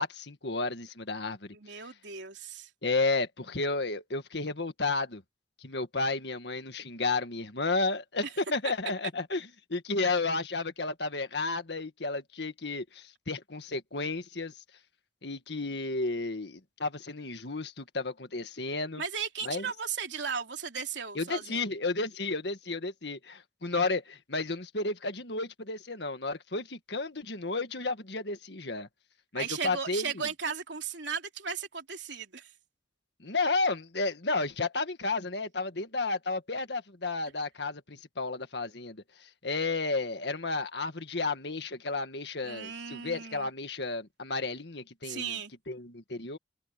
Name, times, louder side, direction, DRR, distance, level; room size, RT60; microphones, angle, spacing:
voice 1, 0.0-1.6 2.8-5.2 5.6-14.5 15.2-19.0 19.4-19.7 21.2-28.9 29.3-30.1 33.2-45.4 45.7-46.4, left 3 dB, 65° left, 1.8 m, -32 dB
voice 2, 1.5-2.7 19.0-21.6 29.4-32.5 42.4-43.5 45.0-45.5, right 6 dB, 80° right, 3.1 m, -36 dB
head